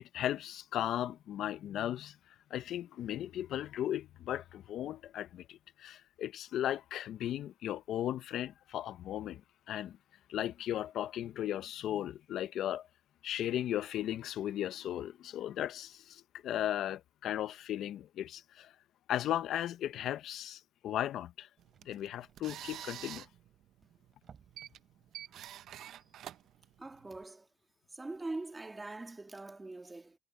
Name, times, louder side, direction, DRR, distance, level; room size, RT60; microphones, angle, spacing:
voice 1, 0.0-2.2 2.5-9.4 9.7-10.0 10.3-12.9 13.2-18.7 19.1-21.5 21.9-23.3, left 11 dB, 75° left, 0.5 m, -36 dB
sound 1, 20.7-20.8 21.0-21.1 21.3-23.6 24.0-24.8 25.1-25.3 25.7-25.8, right 7 dB, 50° right, 6.1 m, -62 dB
sound 2, 21.6-27.2, right 11 dB, 80° right, 0.5 m, -49 dB
voice 2, 26.8-27.4 27.9-30.1, right 2 dB, 20° right, 1.6 m, -42 dB
cardioid pair, 90°, 0 cm